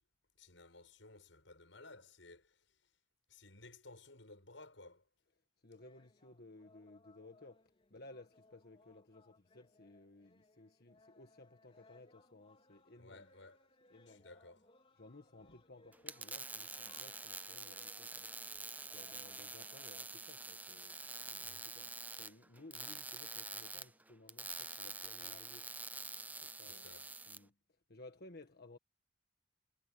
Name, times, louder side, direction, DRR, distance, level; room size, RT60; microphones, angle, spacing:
voice 1, 0.4-2.8 3.3-5.0 13.0-13.6 14.0-14.6 21.4-21.7 26.6-27.1, left 2 dB, 85° left, 6.5 m, -57 dB
voice 2, 5.6-13.3 13.9-14.3 15.0-18.3 18.9-20.9 21.3-25.7 26.4-26.9 27.3-27.5 27.9-28.8, left 2 dB, 55° left, 1.6 m, -58 dB
sound 1, 5.8-20.1, left 2 dB, 30° left, 4.1 m, -68 dB
sound 2, 15.9-27.4, right 3 dB, 10° right, 0.6 m, -47 dB
head